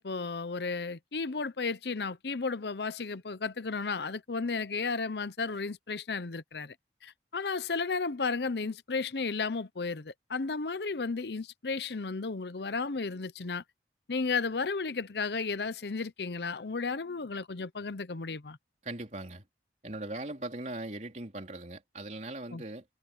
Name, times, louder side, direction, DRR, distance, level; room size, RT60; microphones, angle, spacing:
voice 1, 0.0-6.7 7.0-13.6 14.1-18.6 22.5-22.6, left 4 dB, 70° left, 0.8 m, -33 dB
voice 2, 18.8-19.4 19.8-22.9, right 2 dB, 40° right, 3.6 m, -39 dB
head